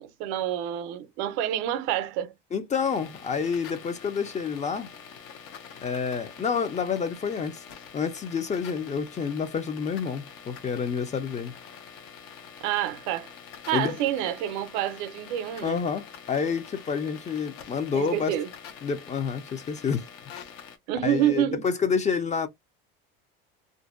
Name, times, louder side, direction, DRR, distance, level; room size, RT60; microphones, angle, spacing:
voice 1, 0.0-2.3 12.6-13.3 13.7-15.8 17.9-18.5 20.9-21.7, right 11 dB, 70° right, 0.6 m, -28 dB
voice 2, 2.5-4.9 5.8-7.6 7.9-11.5 13.7-14.0 15.6-18.3 18.8-20.1 21.0-22.5, left 6 dB, 25° left, 0.5 m, -28 dB
sound 1, 2.8-20.8, left 7 dB, 65° left, 0.8 m, -46 dB
2.5 x 2.1 x 2.4 m
supercardioid pair, 95°, 29 cm